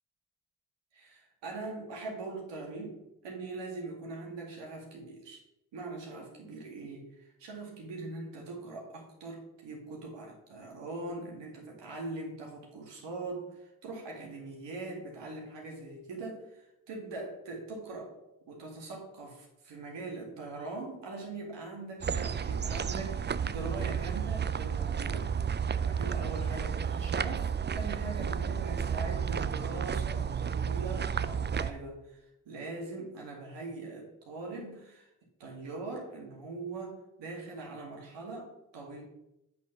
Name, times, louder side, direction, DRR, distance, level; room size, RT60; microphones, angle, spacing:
voice 1, 0.9-5.4 5.7-18.1 18.5-25.3 25.7-32.2 32.5-35.1 35.4-39.0, right 3 dB, 90° right, -1 dB, 2.2 m, -42 dB
sound 1, 22.0-31.7, right 7 dB, 25° right, 0.4 m, -32 dB
8.2 x 4.2 x 6.0 m, 0.91 s
supercardioid pair, 45°, 42 cm